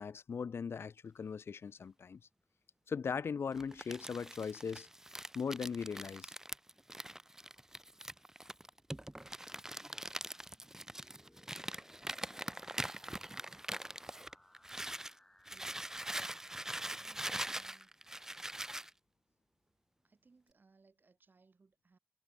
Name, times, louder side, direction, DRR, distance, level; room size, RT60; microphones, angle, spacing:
voice 1, 0.0-2.2 2.9-4.9 5.3-6.3, left 6 dB, 60° left, 0.6 m, -39 dB
Crumpling crinkling, 3.5-15.1 15.4-18.9, right 1 dB, 10° right, 0.7 m, -43 dB
sound 1, 10.1-18.0, left 1 dB, 10° left, 4.2 m, -66 dB
voice 2, 15.5-15.9 17.0-17.9 20.0-22.0, right 4 dB, 45° right, 4.5 m, -68 dB
cardioid pair, 65°, 5 cm